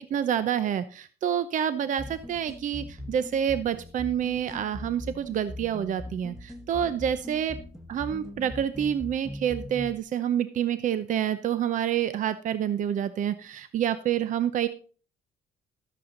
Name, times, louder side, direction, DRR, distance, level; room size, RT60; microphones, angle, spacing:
voice 1, 0.0-7.6 7.9-14.7, right 9 dB, 50° right, 13 dB, 0.7 m, -28 dB
sound 1, 2.0-10.0, left 1 dB, 5° right, 1.4 m, -41 dB
12.5 x 8.4 x 3.9 m, 0.39 s
cardioid pair, 110°, 17 cm